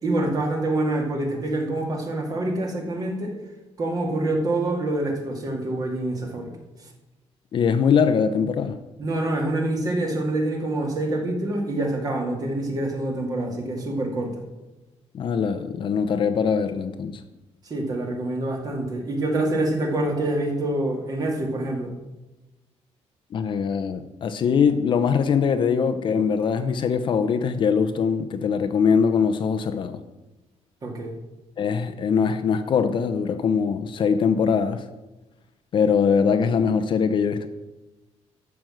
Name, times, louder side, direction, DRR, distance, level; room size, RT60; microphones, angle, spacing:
voice 1, 0.0-3.3 3.8-6.5 9.0-14.4 17.6-21.9 30.8-31.2, right 1 dB, 35° right, 2.2 m, -26 dB
voice 2, 7.5-8.8 15.1-17.2 23.3-30.0 31.6-34.8 35.7-37.5, left 6 dB, 45° left, 0.7 m, -22 dB
12.5 x 6.1 x 7.8 m
cardioid pair, 175°, 11 cm